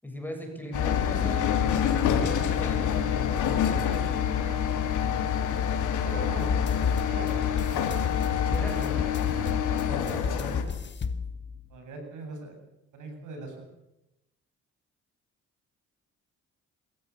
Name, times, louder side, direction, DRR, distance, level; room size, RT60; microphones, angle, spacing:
voice 1, 0.0-1.7 2.0-3.1 8.5-9.0 9.9-10.7, equal, 5° left, 3 dB, 7.5 m, -38 dB
sound 1, 0.7-10.6, left 8 dB, 85° left, 3.3 m, -26 dB
voice 2, 6.0-6.5 7.0-7.4 9.8-9.9 11.7-12.6 12.9-13.6, right 2 dB, 80° right, 3 dB, 7.9 m, -40 dB
sound 2, 6.4-11.7, left 5 dB, 35° left, 1.4 m, -33 dB
27.0 x 15.0 x 8.5 m, 0.93 s
cardioid pair, 90°, 30 cm